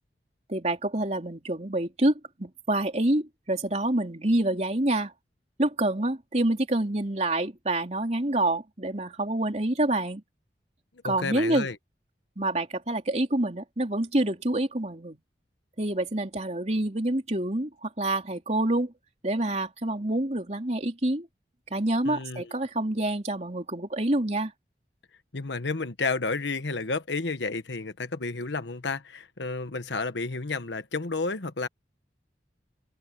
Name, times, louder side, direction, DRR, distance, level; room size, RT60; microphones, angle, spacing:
voice 1, 0.5-2.1 2.4-5.1 5.6-10.2 11.0-11.7 12.4-15.2 15.8-18.9 19.2-21.3 21.7-24.5, right 1 dB, 40° right, 3.6 m, -27 dB
voice 2, 11.0-11.8 22.0-22.6 25.3-31.7, left 3 dB, 90° left, 1.3 m, -31 dB
head